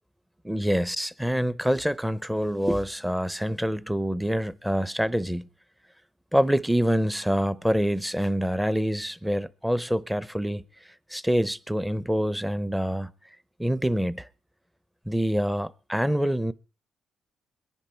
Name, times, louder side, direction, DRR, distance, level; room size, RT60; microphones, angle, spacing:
voice 1, 0.4-5.5 6.3-10.6 11.1-13.1 13.6-14.3 15.1-16.5, equal, 5° right, 0.7 m, -26 dB
22.0 x 10.5 x 4.5 m
cardioid pair, 90°, 0 cm